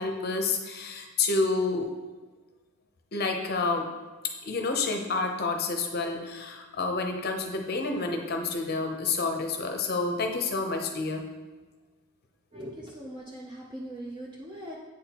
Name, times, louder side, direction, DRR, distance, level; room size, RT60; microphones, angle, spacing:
voice 1, 0.0-1.9 3.1-3.9 4.2-11.2, left 3 dB, 45° left, 4 dB, 0.7 m, -29 dB
voice 2, 12.5-14.8, right 1 dB, 20° right, -4 dB, 0.6 m, -40 dB
8.5 x 4.2 x 2.9 m, 1.3 s
head